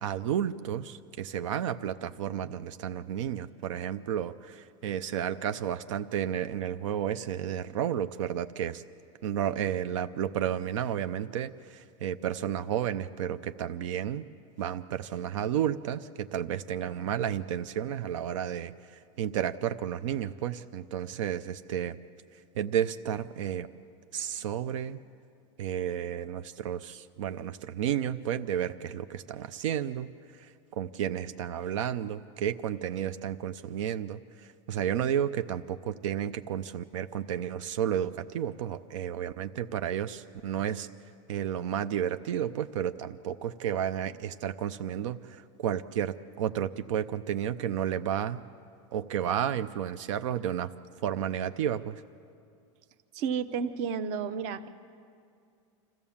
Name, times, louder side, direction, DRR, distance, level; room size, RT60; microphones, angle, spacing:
voice 1, 0.0-8.8 9.2-14.3 14.6-22.0 22.3-23.7 24.1-25.0 25.6-40.9 41.3-48.4 48.9-50.7 51.0-52.0, right 9 dB, 90° right, 11 dB, 0.6 m, -32 dB
voice 2, 53.1-54.7, right 6 dB, 45° right, 12 dB, 0.9 m, -31 dB
26.0 x 14.5 x 7.2 m, 2.3 s
supercardioid pair, 160°, 16 cm